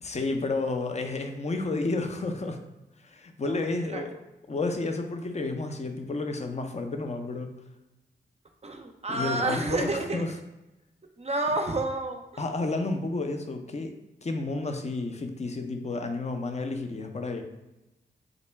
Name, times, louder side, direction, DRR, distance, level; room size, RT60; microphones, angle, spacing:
voice 1, 0.0-2.6 3.0-4.2 4.5-7.5 9.1-10.3 12.4-13.9 14.2-17.4, left 3 dB, 35° left, 5 dB, 0.6 m, -31 dB
voice 2, 3.4-4.0 8.6-10.2 11.2-12.4, right 2 dB, 35° right, 4 dB, 0.5 m, -30 dB
3.8 x 2.1 x 3.3 m, 1.0 s
cardioid pair, 50°, 19 cm